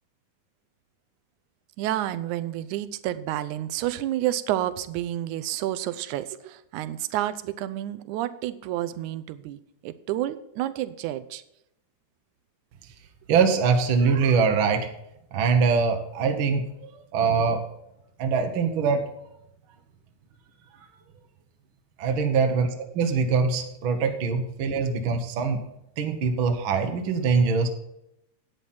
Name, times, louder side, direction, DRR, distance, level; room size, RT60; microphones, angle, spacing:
voice 1, 1.8-11.4, right 13 dB, 80° right, 14 dB, 2.0 m, -30 dB
voice 2, 13.3-14.9 15.3-17.6 18.2-19.0 22.0-22.7 22.9-25.6 26.0-27.7, right 5 dB, 55° right, 4 dB, 1.5 m, -23 dB
11.5 x 9.1 x 4.3 m, 0.83 s
omnidirectional pair, 3.5 m